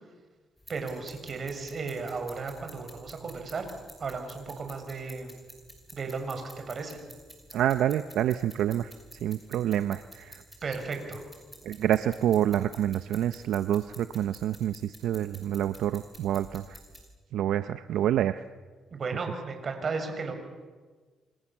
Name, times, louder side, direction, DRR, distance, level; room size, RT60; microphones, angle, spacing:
sound 1, 0.6-17.0, equal, 5° left, 7.2 m, -51 dB
voice 1, 0.7-3.7 4.0-5.3 5.9-7.0 10.6-11.2 18.9-20.3, right 4 dB, 45° right, 6 dB, 6.4 m, -34 dB
voice 2, 7.5-8.9 9.2-10.4 10.7-10.8 11.6-16.8 17.3-18.4, right 11 dB, 80° right, 11 dB, 0.7 m, -27 dB
29.5 x 25.5 x 7.4 m, 1.4 s
cardioid pair, 90°, 0 cm